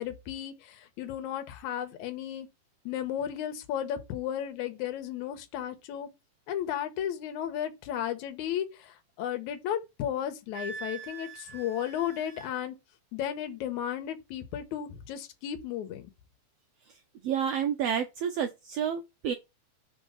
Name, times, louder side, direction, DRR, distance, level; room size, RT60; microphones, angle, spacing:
voice 1, 0.0-2.5 2.9-6.1 6.5-12.8 13.1-16.1, left 10 dB, 75° left, 2.2 m, -34 dB
Wind instrument woodwind instrument, 10.5-12.5, right 5 dB, 50° right, 0.6 m, -43 dB
voice 2, 17.2-19.3, right 8 dB, 85° right, 1.3 m, -30 dB
5.2 x 4.4 x 5.2 m
omnidirectional pair, 3.7 m